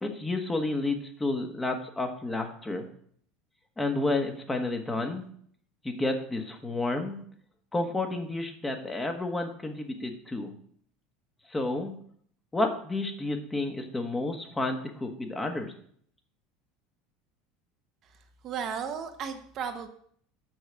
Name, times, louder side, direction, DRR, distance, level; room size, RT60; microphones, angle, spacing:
voice 1, 0.0-2.9 3.8-5.2 5.8-7.2 7.7-10.5 11.5-11.9 12.5-15.7, left 2 dB, 15° left, 4 dB, 1.5 m, -30 dB
voice 2, 18.4-19.9, right 7 dB, 45° right, 6 dB, 1.0 m, -34 dB
6.4 x 6.3 x 6.3 m, 0.62 s
hypercardioid pair, 75°, 0 cm